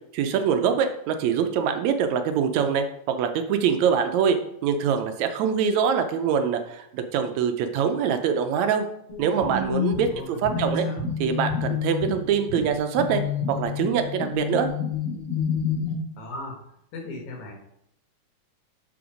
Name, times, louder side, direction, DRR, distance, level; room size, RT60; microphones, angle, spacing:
voice 1, 0.1-4.4 4.6-8.9 9.2-10.9 11.2-13.2 13.5-14.7, right 7 dB, 75° right, 7 dB, 1.9 m, -24 dB
sound 1, 9.1-15.9, left 6 dB, 50° left, 3.0 m, -29 dB
voice 2, 10.1-11.1 16.2-16.6 16.9-17.5, left 2 dB, 80° left, 1 dB, 3.2 m, -37 dB
6.8 x 5.4 x 5.0 m, 0.75 s
omnidirectional pair, 3.3 m